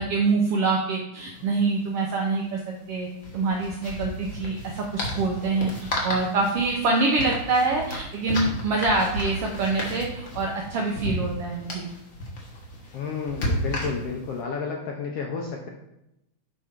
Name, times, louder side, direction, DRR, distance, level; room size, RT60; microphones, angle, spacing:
voice 1, 0.0-2.6 2.9-3.1 3.3-5.7 6.0-11.9, right 3 dB, 75° right, 0 dB, 1.4 m, -25 dB
sound 1, 1.2-1.3 1.5-1.7 3.1-14.3, equal, 50° left, 1.0 m, -33 dB
voice 2, 12.9-15.7, left 5 dB, 70° left, 0 dB, 1.5 m, -31 dB
6.6 x 5.0 x 4.4 m, 0.86 s
omnidirectional pair, 3.5 m